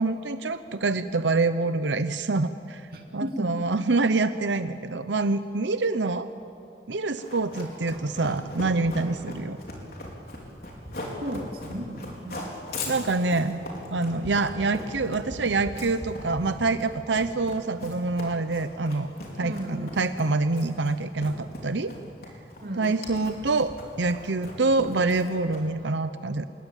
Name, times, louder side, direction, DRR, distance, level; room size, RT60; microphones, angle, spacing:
voice 1, 0.0-6.3 6.9-9.6 12.9-13.6 13.9-19.1 19.4-21.9 22.8-26.4, right 3 dB, 90° right, 11 dB, 0.8 m, -26 dB
voice 2, 2.9-3.5 11.2-12.5 19.4-20.0 22.6-22.9, equal, 55° right, 0 dB, 2.7 m, -34 dB
Run, 7.2-25.8, left 1 dB, 55° left, 4.7 m, -39 dB
26.0 x 21.5 x 9.1 m, 2.7 s
head